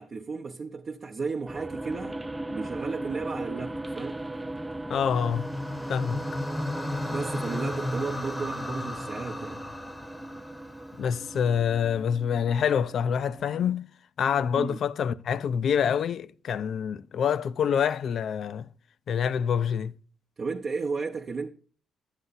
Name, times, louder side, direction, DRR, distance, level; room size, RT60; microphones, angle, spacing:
voice 1, 0.0-2.2 2.5-4.2 7.1-9.6 14.6-14.8 20.4-21.5, right 4 dB, 40° right, 0.7 m, -34 dB
sound 1, 1.5-13.5, right 1 dB, 10° right, 0.4 m, -38 dB
voice 2, 4.9-5.5 5.9-6.2 11.0-13.9 14.2-18.7 19.1-19.9, left 7 dB, 60° left, 0.4 m, -26 dB
sound 2, 5.0-11.4, left 1 dB, 10° left, 0.9 m, -35 dB
11.5 x 8.0 x 4.0 m
cardioid pair, 90°, 0 cm